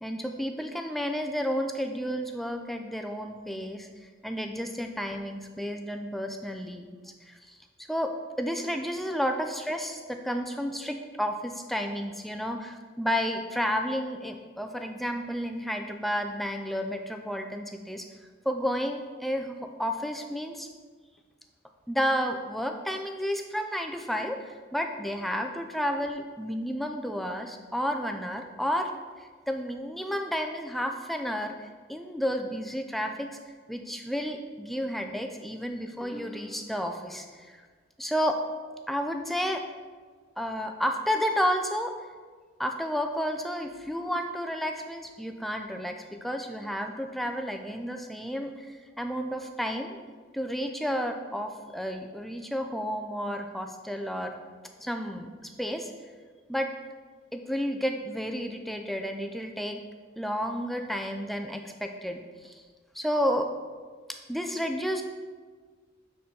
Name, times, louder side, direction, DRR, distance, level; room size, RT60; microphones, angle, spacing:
voice 1, 0.0-3.9 4.2-7.6 7.9-18.1 18.5-20.7 21.9-28.9 29.5-33.4 33.7-37.6 38.0-38.4 38.9-39.6 40.4-41.9 42.6-50.0 50.3-54.4 54.8-55.9 56.5-56.7 57.3-59.8 60.2-62.5 62.9-63.5 64.3-65.0, equal, ahead, 4 dB, 0.3 m, -31 dB
6.9 x 4.3 x 3.7 m, 1.5 s
head